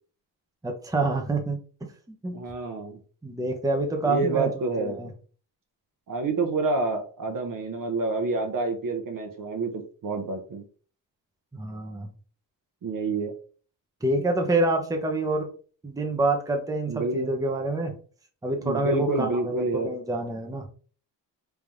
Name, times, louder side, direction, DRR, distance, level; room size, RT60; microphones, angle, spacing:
voice 1, 0.6-1.9 2.2-2.4 3.2-4.5 4.8-5.1 11.5-12.1 14.0-15.5 15.8-18.0 18.4-20.7, right 2 dB, 10° right, 2 dB, 0.8 m, -27 dB
voice 2, 2.3-3.0 4.0-5.0 6.1-10.6 12.8-13.3 16.9-17.3 18.6-19.9, right 3 dB, 50° right, 4 dB, 0.9 m, -28 dB
3.4 x 2.7 x 3.5 m, 0.40 s
cardioid pair, 90°, 44 cm